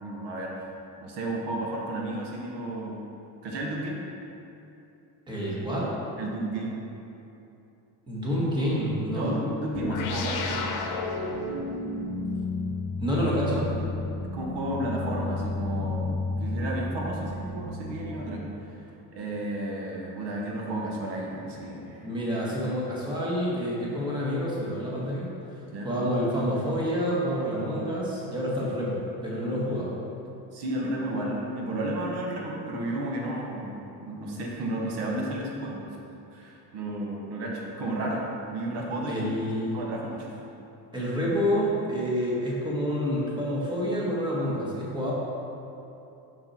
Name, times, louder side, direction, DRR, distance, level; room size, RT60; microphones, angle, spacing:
voice 1, 0.0-0.7 1.0-3.0 3.4-4.0 6.2-6.8 9.1-10.7 14.3-18.4 19.1-22.1 25.7-25.9 30.5-35.9 36.3-39.3 39.7-40.3, right 1 dB, 75° right, -2 dB, 1.3 m, -32 dB
voice 2, 5.3-5.9 8.1-9.4 13.0-13.7 22.0-25.3 25.8-29.9 39.1-39.8 40.9-45.1, equal, 10° right, -6 dB, 1.6 m, -28 dB
sound 1, 9.7-18.6, left 3 dB, 50° left, 0.9 m, -32 dB
6.4 x 6.2 x 4.3 m, 2.8 s
cardioid pair, 135°, 40 cm